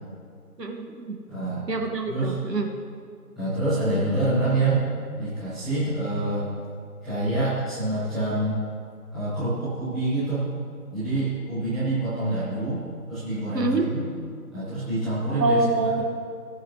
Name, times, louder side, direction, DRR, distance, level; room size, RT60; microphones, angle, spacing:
voice 1, 0.6-1.2 1.7-2.7 13.5-13.9 15.4-16.0, right 2 dB, 85° right, 3 dB, 1.9 m, -25 dB
voice 2, 1.3-1.6 2.1-2.3 3.3-4.8 5.2-6.5 7.0-8.6 9.1-10.4 10.9-12.8 13.1-14.0 14.5-15.6, right 2 dB, ahead, -28 dB, 1.0 m, -26 dB
20.5 x 10.5 x 3.2 m, 2.3 s
figure-of-eight pair, 165°, 48 cm